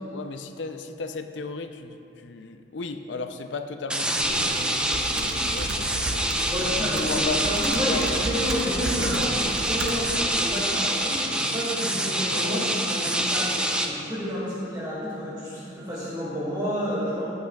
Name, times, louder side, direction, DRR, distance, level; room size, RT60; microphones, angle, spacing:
voice 1, 0.1-6.3 6.6-6.7 7.1-7.5 7.8-8.3 12.3-12.7, left 4 dB, 80° left, 8 dB, 0.5 m, -35 dB
sound 1, 3.9-13.9, right 1 dB, 5° right, 0.5 m, -26 dB
Computer keyboard, 4.2-10.4, right 2 dB, 70° right, 0.7 m, -33 dB
voice 2, 6.5-17.3, equal, 25° right, -8 dB, 2.0 m, -30 dB
16.0 x 8.7 x 2.3 m, 2.9 s
head